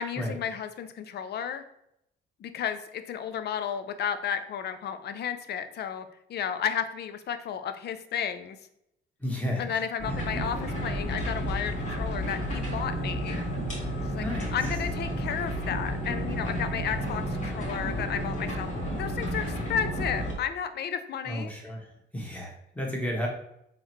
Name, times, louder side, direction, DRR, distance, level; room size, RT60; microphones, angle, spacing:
voice 1, 0.0-1.6 2.4-8.6 9.6-13.4 14.1-14.2 14.5-18.7 19.0-21.5, left 8 dB, 55° left, 10 dB, 0.5 m, -33 dB
voice 2, 9.2-10.2 14.2-14.6 21.2-21.9 22.1-23.3, equal, 5° left, -1 dB, 1.3 m, -33 dB
sound 1, 10.0-20.3, equal, 40° left, 1.4 m, -31 dB
3.8 x 3.2 x 3.0 m, 0.78 s
cardioid pair, 90°, 20 cm